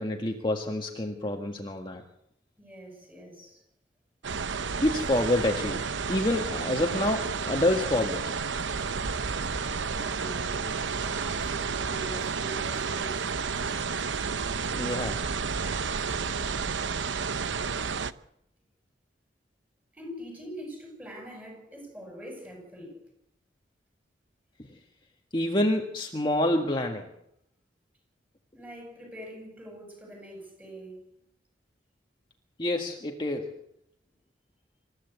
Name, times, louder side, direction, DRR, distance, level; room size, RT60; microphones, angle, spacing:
voice 1, 0.0-2.0 4.8-5.8 6.1-8.3 14.7-15.2 25.3-27.1 32.6-33.5, left 1 dB, 25° left, 1.7 m, -27 dB
voice 2, 2.6-3.6 9.9-13.3 17.7-18.2 19.9-23.0 28.5-31.1, right 1 dB, 10° right, 7.5 m, -44 dB
sound 1, 4.2-18.1, right 5 dB, 85° right, 0.8 m, -31 dB
27.0 x 14.5 x 8.1 m
head